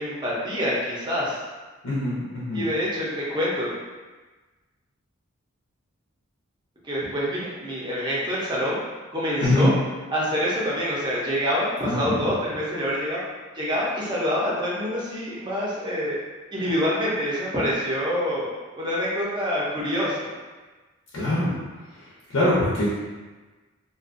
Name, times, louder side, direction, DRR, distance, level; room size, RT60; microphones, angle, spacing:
voice 1, 0.0-1.4 2.5-3.7 6.8-8.8 9.1-9.7 10.1-13.2 13.6-16.2 16.5-20.3, equal, 20° right, -6 dB, 0.6 m, -26 dB
voice 2, 1.8-2.6 9.4-9.7 11.8-12.2 21.1-21.5 22.3-22.9, left 1 dB, 85° left, -8 dB, 0.6 m, -22 dB
2.5 x 2.3 x 2.4 m, 1.3 s
head